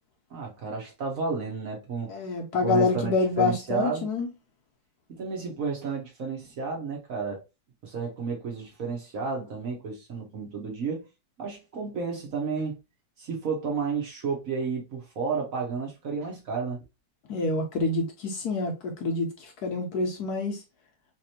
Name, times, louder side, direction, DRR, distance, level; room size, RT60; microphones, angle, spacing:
voice 1, 0.3-2.1 2.6-4.1 5.1-7.4 7.8-11.1 11.4-12.8 13.2-16.8, right 5 dB, 55° right, 1.1 m, -32 dB
voice 2, 2.1-4.3 17.3-20.6, left 3 dB, 65° left, 1.1 m, -27 dB
3.3 x 3.0 x 2.7 m
omnidirectional pair, 2.0 m